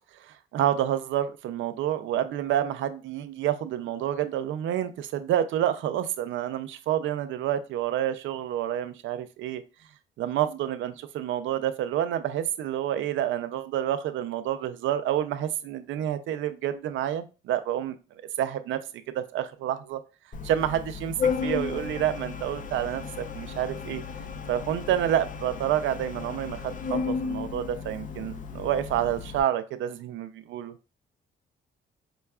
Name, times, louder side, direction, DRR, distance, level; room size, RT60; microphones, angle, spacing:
voice 1, 0.1-9.6 10.2-18.0 18.4-18.8 19.1-20.0 20.4-21.1 21.4-24.0 24.5-26.6 26.9-30.7, right 11 dB, 75° right, 0.4 m, -28 dB
Organ, 20.3-29.4, left 5 dB, 40° left, 0.5 m, -34 dB
5.4 x 2.3 x 2.3 m
cardioid pair, 90°, 20 cm